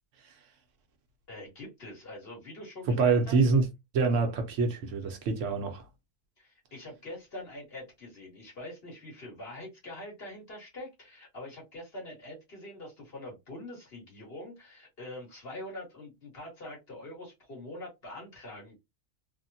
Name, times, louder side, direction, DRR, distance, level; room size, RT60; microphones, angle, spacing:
voice 1, 1.3-3.4 6.4-18.8, left 1 dB, 50° left, 1.7 m, -44 dB
voice 2, 2.9-3.7 3.9-5.8, right 4 dB, 80° right, 1.1 m, -26 dB
3.5 x 2.1 x 2.5 m
omnidirectional pair, 1.3 m